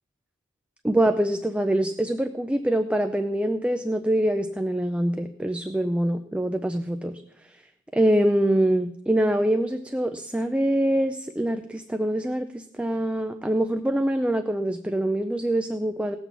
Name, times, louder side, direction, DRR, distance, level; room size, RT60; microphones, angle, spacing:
voice 1, 0.8-7.6 7.9-16.2, right 1 dB, 5° right, 7 dB, 0.5 m, -24 dB
17.5 x 6.1 x 7.1 m, 0.78 s
head